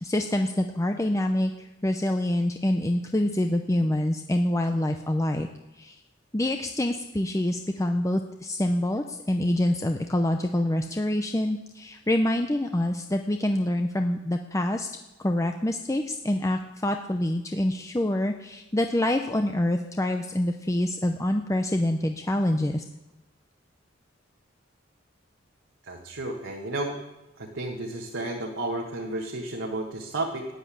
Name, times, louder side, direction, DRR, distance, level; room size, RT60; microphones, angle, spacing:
voice 1, 0.0-5.5 5.8-6.0 6.3-14.9 15.2-22.8, left 1 dB, 15° left, 5 dB, 0.7 m, -26 dB
voice 2, 25.9-27.0 27.4-30.5, right 2 dB, 85° right, -1 dB, 1.8 m, -32 dB
13.5 x 9.9 x 8.7 m, 1.0 s
head